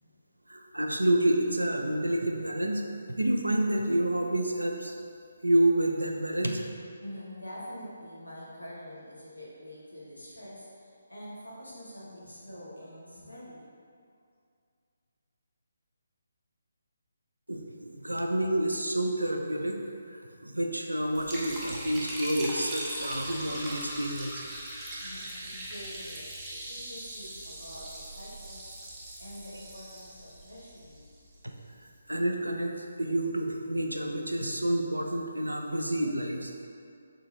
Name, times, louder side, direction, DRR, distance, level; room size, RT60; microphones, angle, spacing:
voice 1, 0.5-2.8 3.2-4.9 5.4-6.6 17.5-19.8 20.4-24.3 32.1-32.7 33.0-36.7, right 1 dB, 85° right, 2 dB, 0.3 m, -28 dB
voice 2, 7.0-13.6 25.0-31.1, equal, 85° left, -7 dB, 1.0 m, -46 dB
Liquid, 21.1-31.3, right 1 dB, 15° right, 0.4 m, -40 dB
3.7 x 2.4 x 2.7 m, 2.3 s
figure-of-eight pair, 145°, 0 cm